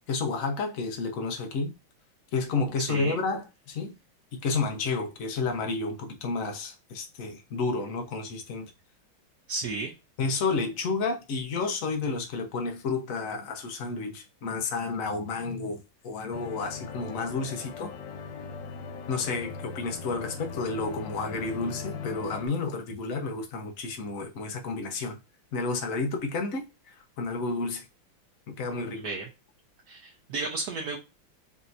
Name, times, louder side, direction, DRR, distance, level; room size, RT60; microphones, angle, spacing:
voice 1, 0.1-1.7 2.3-4.0 4.3-8.7 10.2-17.9 19.1-25.2 25.5-27.8 28.5-29.1, left 4 dB, 50° left, 1.2 m, -31 dB
voice 2, 2.8-3.2 9.5-9.9 28.9-29.3 29.9-31.0, right 3 dB, 55° right, 1.2 m, -33 dB
sound 1, 16.3-22.5, left 5 dB, 70° left, 1.3 m, -39 dB
5.6 x 2.9 x 2.6 m
omnidirectional pair, 2.2 m